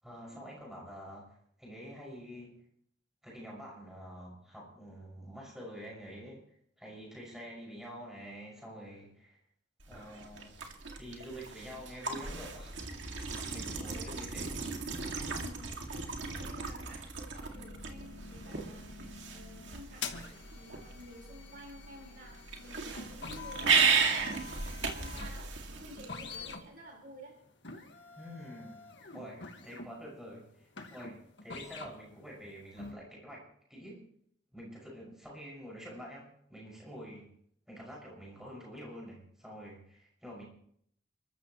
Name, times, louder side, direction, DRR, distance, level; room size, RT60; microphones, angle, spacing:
voice 1, 0.0-2.6 3.2-9.4 9.9-10.6 11.0-12.8 13.0-14.5 28.1-28.8 29.1-33.4 33.7-34.0 34.5-37.3 37.7-40.4, equal, 5° right, -3 dB, 6.1 m, -47 dB
sound 1, 9.8-26.5, right 5 dB, 85° right, 2.2 m, -35 dB
voice 2, 15.3-15.8 16.3-24.4 24.9-27.3, equal, 50° right, 0 dB, 4.6 m, -52 dB
sound 2, 17.5-32.1 32.4-32.9, left 4 dB, 80° left, 1.8 m, -47 dB
30.0 x 14.0 x 3.1 m, 0.68 s
head